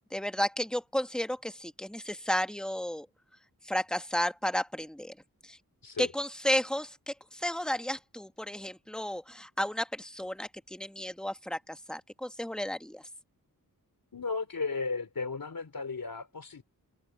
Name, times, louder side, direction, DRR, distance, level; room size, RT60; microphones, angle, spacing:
voice 1, 0.1-3.1 3.6-5.1 5.4-5.6 6.0-13.0, equal, ahead, 1.3 m, -33 dB
voice 2, 14.1-16.6, left 4 dB, 65° left, 3.3 m, -35 dB
wide cardioid pair, 80°, 36 cm